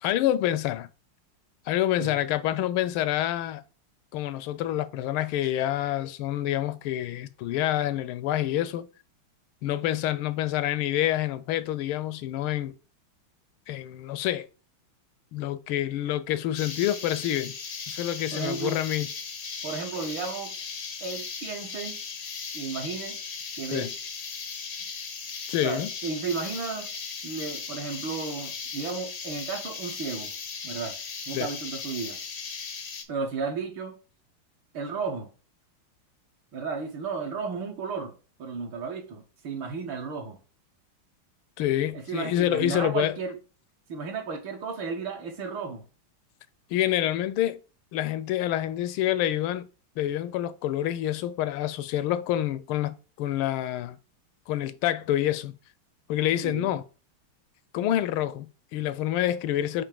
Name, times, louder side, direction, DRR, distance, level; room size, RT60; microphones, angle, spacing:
voice 1, 0.0-0.9 1.7-3.6 4.1-8.9 9.6-12.8 13.7-14.5 15.3-17.5 17.9-19.1 23.7-23.9 25.5-25.9 31.3-31.5 41.6-43.2 46.7-47.6 47.9-49.7 50.0-54.0 54.5-55.6 56.1-56.8 57.7-59.8, left 12 dB, 85° left, 1.5 m, -27 dB
sound 1, 16.5-33.0, left 5 dB, 70° left, 0.6 m, -37 dB
voice 2, 18.3-18.8 19.6-20.5 21.0-22.0 22.5-23.2 23.6-23.9 25.6-26.9 27.2-30.3 30.6-31.0 31.3-32.2 33.1-34.0 34.7-35.3 36.5-38.1 38.4-40.4 41.9-43.4 43.9-45.8 56.4-56.7, right 5 dB, 70° right, 1.9 m, -33 dB
7.2 x 2.9 x 5.0 m
omnidirectional pair, 2.3 m